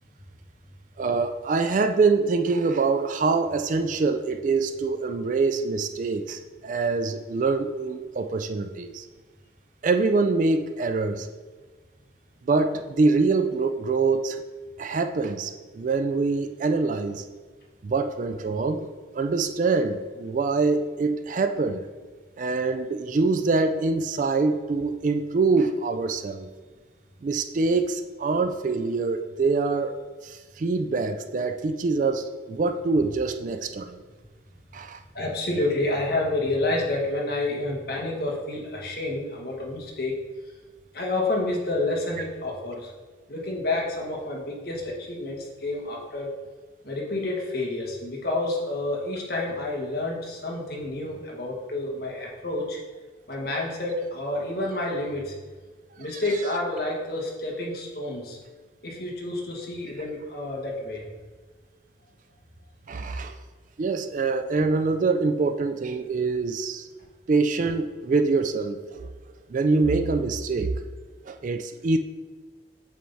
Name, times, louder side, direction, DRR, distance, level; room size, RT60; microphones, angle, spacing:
voice 1, 1.0-9.1 9.8-11.3 12.5-14.4 14.8-17.2 17.8-18.9 19.1-21.9 22.4-26.5 27.2-30.0 30.2-34.0 34.7-35.0 62.9-63.3 63.8-66.9 67.3-69.1 69.5-70.7 71.3-72.0, right 3 dB, 40° right, 8 dB, 0.3 m, -25 dB
voice 2, 35.1-40.1 40.9-42.9 43.3-46.3 46.8-52.8 53.3-55.3 56.0-58.4 58.8-61.0, left 2 dB, 50° left, -2 dB, 1.3 m, -29 dB
7.6 x 3.4 x 4.0 m, 1.4 s
head